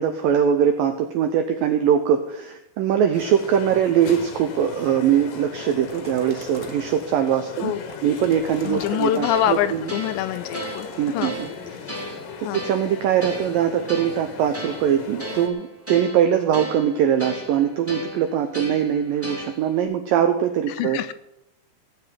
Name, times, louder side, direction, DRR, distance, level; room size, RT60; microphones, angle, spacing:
voice 1, 0.0-7.7 8.0-9.8 11.0-11.5 12.1-21.0, right 9 dB, 80° right, 6 dB, 2.0 m, -22 dB
sound 1, 3.1-15.5, left 6 dB, 70° left, 3.2 m, -38 dB
sound 2, 5.7-7.0 7.6-9.7 10.3-11.5, left 1 dB, 15° left, 2.1 m, -43 dB
voice 2, 7.6-7.9 8.6-11.4 12.4-12.6 20.8-21.1, left 12 dB, 90° left, 12 dB, 2.9 m, -25 dB
sound 3, 9.2-19.8, right 1 dB, 5° right, 2.1 m, -36 dB
16.5 x 5.6 x 9.3 m, 0.85 s
omnidirectional pair, 5.1 m